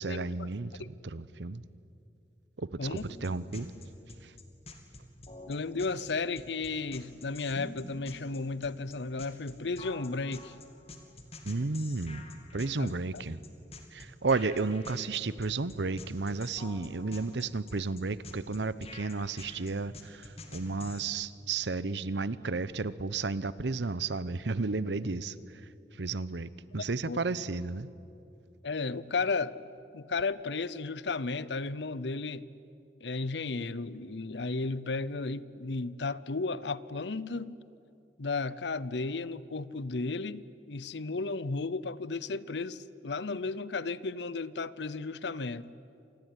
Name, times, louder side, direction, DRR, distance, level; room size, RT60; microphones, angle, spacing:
voice 1, 0.0-1.6 2.6-3.7 4.2-4.3 11.4-13.4 13.9-27.9, right 3 dB, 75° right, 17 dB, 0.9 m, -33 dB
sound 1, 3.0-21.1, left 2 dB, 35° left, 2.6 m, -48 dB
voice 2, 5.5-10.5 12.8-12.9 27.1-27.2 28.6-29.5 29.9-32.5 33.0-37.6 38.2-45.7, left 3 dB, 75° left, 18 dB, 0.8 m, -34 dB
27.0 x 19.5 x 9.9 m, 2.6 s
head